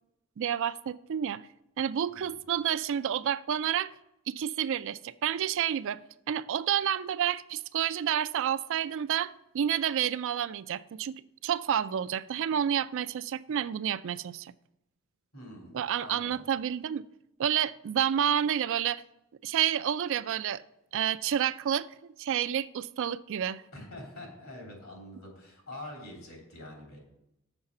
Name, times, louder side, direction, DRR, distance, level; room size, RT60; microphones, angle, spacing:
voice 1, 0.4-1.4 1.8-3.9 4.3-6.0 6.3-11.1 11.4-14.5 15.7-17.0 17.4-19.0 19.4-20.6 20.9-21.9 22.2-23.6, right 9 dB, 65° right, 0.3 m, -29 dB
voice 2, 15.3-16.5 23.7-27.0, left 1 dB, 75° left, 3.2 m, -45 dB
7.0 x 5.6 x 6.5 m
head